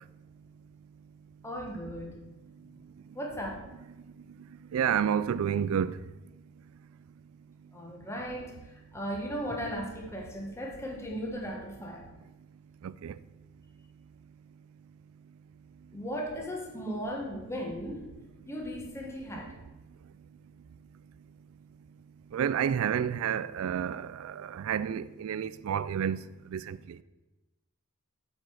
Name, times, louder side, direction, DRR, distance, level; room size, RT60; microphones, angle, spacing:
voice 1, 1.4-2.1 3.1-3.6 7.7-12.1 15.9-18.1 18.5-19.6, equal, 10° left, 1.3 m, -37 dB
voice 2, 4.7-6.0 12.8-13.2 22.3-26.2 26.5-27.0, right 8 dB, 70° right, 0.3 m, -30 dB
8.1 x 5.2 x 6.2 m
head